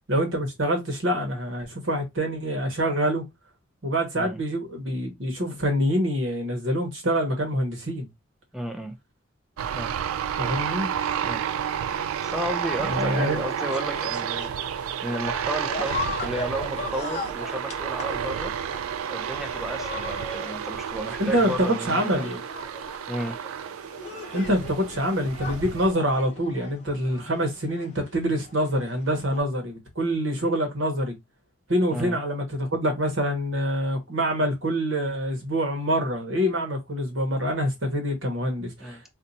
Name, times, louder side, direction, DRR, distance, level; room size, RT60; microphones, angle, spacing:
voice 1, 0.0-3.2 3.8-8.1 10.4-10.9 12.8-13.4 21.2-22.4 24.3-31.2 31.7-39.1, equal, 65° right, 1.1 m, -26 dB
voice 2, 8.5-9.0 9.7-9.9 11.2-11.4 12.2-14.5 15.0-18.5 19.1-22.3 23.1-23.4 31.9-32.2 38.8-39.1, right 1 dB, ahead, 0.4 m, -33 dB
sound 1, 9.6-25.9, right 8 dB, 85° right, 0.3 m, -31 dB
sound 2, 13.6-29.4, left 3 dB, 35° left, 0.7 m, -39 dB
2.6 x 2.2 x 4.0 m
head